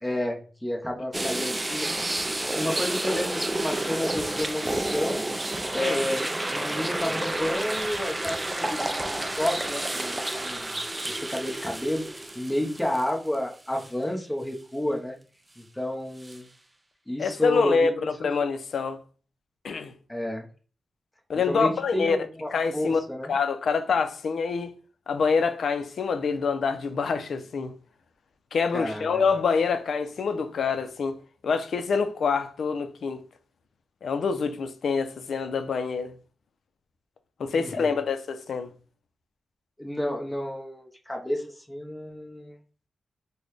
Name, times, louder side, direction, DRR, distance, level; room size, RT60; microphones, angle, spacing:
voice 1, 0.0-2.1 2.5-5.2 5.7-10.7 11.1-15.2 15.6-16.5 17.1-17.9 20.1-20.5 21.5-23.3 28.7-29.2 37.5-37.9 39.8-42.6, left 1 dB, 5° left, 0.8 m, -31 dB
sound 1, 1.1-13.4 13.8-13.9 16.2-16.4, right 1 dB, 15° right, 0.3 m, -30 dB
voice 2, 17.2-19.0 19.6-19.9 21.3-22.2 22.5-23.0 23.3-24.7 25.1-27.7 28.5-31.2 31.4-33.2 34.0-36.1 37.4-38.7, left 5 dB, 75° left, 0.5 m, -26 dB
4.0 x 2.2 x 3.2 m
cardioid pair, 85°, 0 cm